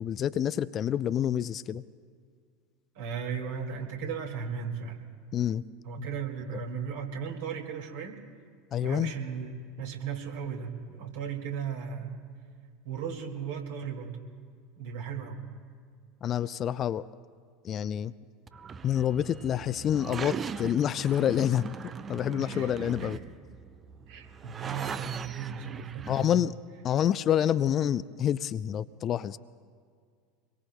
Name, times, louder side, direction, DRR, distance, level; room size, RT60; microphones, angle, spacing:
voice 1, 0.0-1.8 5.3-5.6 6.0-6.1 8.7-9.1 16.2-17.1 17.6-18.1 18.8-21.7 22.1-23.2 26.1-26.5 26.8-29.4, left 10 dB, 35° left, 16 dB, 0.4 m, -27 dB
voice 2, 2.9-5.0 5.8-8.2 8.8-9.5 9.8-12.2 12.8-14.2 14.8-15.4 22.3-22.7 23.0-23.2 24.1-26.4, right 7 dB, 60° right, 1 dB, 2.1 m, -36 dB
sound 1, 18.5-26.2, right 6 dB, 30° right, 0.5 m, -40 dB
25.5 x 22.0 x 2.2 m, 2.1 s
figure-of-eight pair, 75°, 0 cm